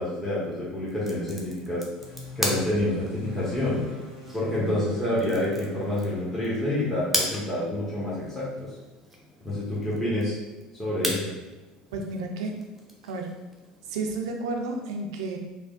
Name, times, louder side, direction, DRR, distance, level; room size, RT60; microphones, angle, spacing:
voice 1, 0.0-1.8 2.4-3.8 4.3-8.7 9.4-10.4 10.8-11.3, left 1 dB, 10° left, -9 dB, 1.0 m, -28 dB
sound 1, 0.9-14.4, equal, 5° right, 0.7 m, -38 dB
sound 2, 2.0-7.3, left 2 dB, 70° left, 0.8 m, -44 dB
voice 2, 11.9-12.6 13.0-13.3 13.9-15.4, right 3 dB, 85° right, 2 dB, 0.4 m, -31 dB
3.3 x 2.1 x 2.4 m, 1.2 s
supercardioid pair, 80°, 3 cm